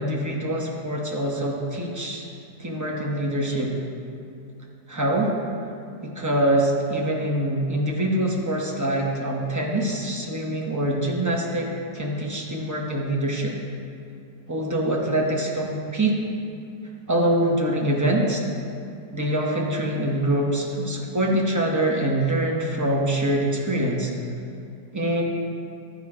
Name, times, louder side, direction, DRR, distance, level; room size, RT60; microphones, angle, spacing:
voice 1, 0.0-2.2 2.6-3.7 4.9-5.3 6.0-13.5 14.5-16.2 17.1-18.4 19.1-24.1 24.9-25.2, right 1 dB, 20° right, -2 dB, 0.5 m, -24 dB
12.0 x 4.8 x 4.8 m, 2.5 s
omnidirectional pair, 1.9 m